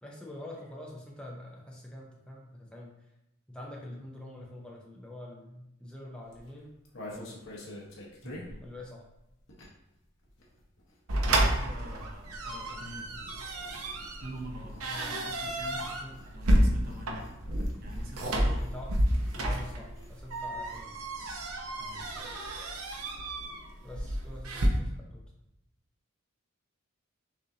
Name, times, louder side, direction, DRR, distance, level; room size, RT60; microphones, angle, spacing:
voice 1, 0.0-2.9 3.5-6.7 7.1-7.3 8.6-9.0 14.9-15.2 15.9-16.2 18.3-18.9 19.4-21.0 23.8-25.2, left 1 dB, 5° left, -3 dB, 0.5 m, -45 dB
sound 1, 6.2-10.0 10.2-21.1 21.4-21.5 21.7-22.0, left 1 dB, 60° left, 0.9 m, -49 dB
voice 2, 8.2-8.6 11.4-13.3 14.2-15.9 16.3-17.4 17.8-18.7 21.7-22.1, right 1 dB, 45° right, 1 dB, 0.7 m, -46 dB
sound 2, 11.1-24.7, right 1 dB, 85° right, 0.7 m, -30 dB
6.4 x 2.7 x 2.7 m, 0.86 s
head